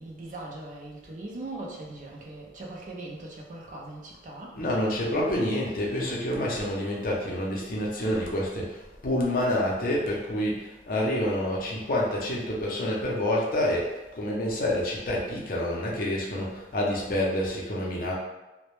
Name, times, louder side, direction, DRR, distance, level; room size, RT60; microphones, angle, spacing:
voice 1, 0.0-4.5, right 2 dB, 45° right, -1 dB, 0.4 m, -40 dB
voice 2, 4.5-18.1, left 1 dB, 50° left, -3 dB, 0.5 m, -28 dB
2.1 x 2.0 x 3.0 m, 1.1 s
head